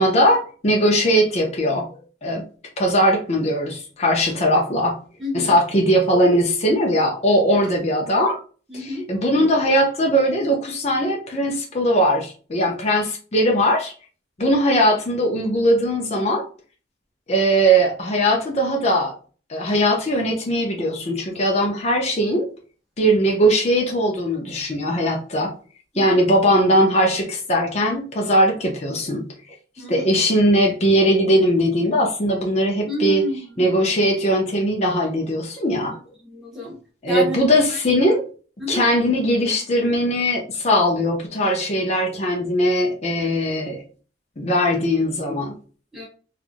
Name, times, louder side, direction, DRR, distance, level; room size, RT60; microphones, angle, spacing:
voice 1, 0.0-1.9 2.2-2.5 2.8-5.0 5.3-8.4 8.7-13.9 14.4-16.4 17.3-19.1 19.5-22.5 23.0-25.5 26.0-29.3 29.9-33.2 33.6-36.0 37.0-38.2 38.7-43.8 44.4-45.6, equal, 35° left, 0 dB, 0.6 m, -20 dB
voice 2, 5.2-5.5 7.5-7.7 8.7-9.0 25.9-26.2 29.8-30.1 32.8-33.7 36.2-36.8 37.1-37.4 37.7-37.8 38.6-38.8 45.9-46.1, equal, ahead, -6 dB, 1.2 m, -30 dB
3.1 x 2.4 x 2.5 m, 0.39 s
head